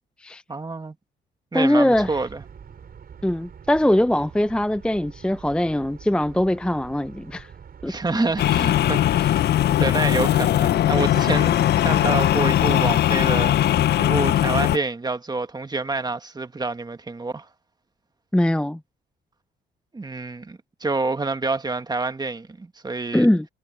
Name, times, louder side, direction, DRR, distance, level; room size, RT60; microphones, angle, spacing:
voice 1, 0.5-0.9 1.5-2.4 7.9-9.5 9.8-17.5 19.9-23.3, right 3 dB, 20° right, 1.7 m, -28 dB
voice 2, 1.5-2.2 3.2-7.5 7.8-8.3 18.3-18.8 23.1-23.5, left 1 dB, 5° left, 0.6 m, -21 dB
sound 1, 1.9-10.0, right 7 dB, 50° right, 5.0 m, -45 dB
sound 2, 8.4-14.8, left 12 dB, 55° left, 0.4 m, -19 dB
cardioid pair, 90°, 20 cm